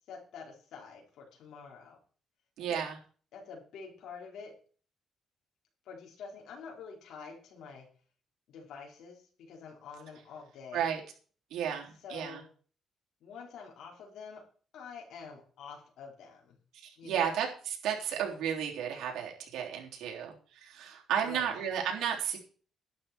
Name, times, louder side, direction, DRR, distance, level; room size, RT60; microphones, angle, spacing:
voice 1, 0.1-2.0 2.7-2.8 3.3-4.6 5.8-7.9 8.5-11.0 12.0-12.5 13.2-14.4 14.7-16.6 17.0-17.4 21.2-21.7, left 5 dB, 80° left, -1 dB, 4.6 m, -47 dB
voice 2, 2.6-2.9 10.7-11.0 11.5-12.4 16.7-22.4, right 8 dB, 80° right, 0 dB, 3.6 m, -33 dB
11.5 x 10.5 x 4.5 m, 0.42 s
cardioid pair, 90°, 0 cm